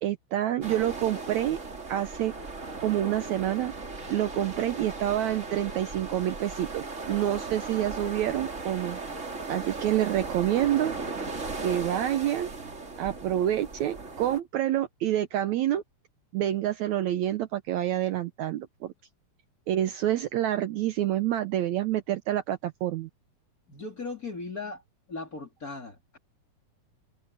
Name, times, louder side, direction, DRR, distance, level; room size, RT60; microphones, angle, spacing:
voice 1, 0.0-1.6 1.9-2.3 2.8-3.7 4.1-9.0 9.5-10.9 11.6-12.5 13.0-15.8 16.3-18.9 19.7-23.1, right 12 dB, 70° right, 1.9 m, -27 dB
sound 1, 0.6-14.4, right 3 dB, 25° right, 2.5 m, -37 dB
voice 2, 23.7-24.8 25.1-26.2, left 3 dB, 25° left, 2.9 m, -38 dB
omnidirectional pair, 3.8 m